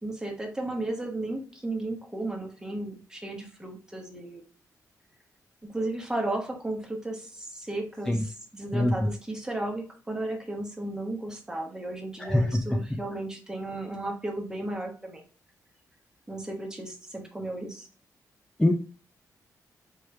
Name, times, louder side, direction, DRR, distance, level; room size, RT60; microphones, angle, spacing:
voice 1, 0.0-4.4 5.6-15.2 16.3-17.9, right 2 dB, 10° right, 1 dB, 1.2 m, -34 dB
voice 2, 8.1-8.2 8.7-8.9 12.2-12.5 18.6-18.7, left 1 dB, 10° left, 4 dB, 0.5 m, -22 dB
4.6 x 3.2 x 3.1 m, 0.38 s
wide cardioid pair, 130°, 6 cm